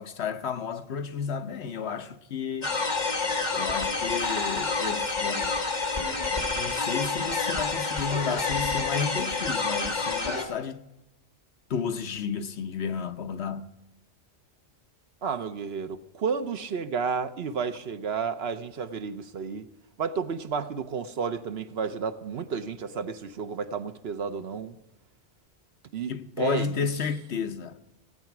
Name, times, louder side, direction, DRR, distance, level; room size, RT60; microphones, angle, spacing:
voice 1, 0.0-2.7 3.5-5.5 6.3-10.8 11.7-13.7 26.1-27.8, left 6 dB, 65° left, 1.1 m, -32 dB
sound 1, 2.6-10.4, left 3 dB, 40° left, 1.7 m, -28 dB
voice 2, 15.2-19.6 20.0-24.8 25.9-26.1 26.4-26.7, right 6 dB, 65° right, 1.0 m, -31 dB
16.0 x 9.3 x 5.9 m
omnidirectional pair, 1.2 m